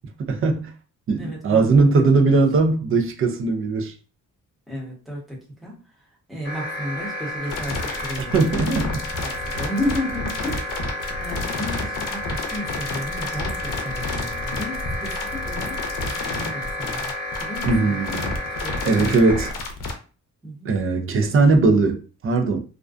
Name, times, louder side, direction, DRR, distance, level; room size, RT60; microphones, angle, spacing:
voice 1, 0.2-0.7 1.1-3.9 8.3-9.1 17.6-18.4 18.9-19.5 20.6-22.6, right 3 dB, 40° right, 0.4 m, -19 dB
voice 2, 1.2-1.9 4.7-6.0 6.3-10.8 11.2-17.1 17.4-18.0 18.6-19.1 20.4-20.7, equal, ahead, 0.8 m, -33 dB
sound 1, 6.4-19.5, left 1 dB, 30° left, 1.0 m, -32 dB
sound 2, 7.5-19.9, left 3 dB, 75° left, 0.6 m, -30 dB
2.4 x 2.1 x 2.4 m
wide cardioid pair, 165°, 32 cm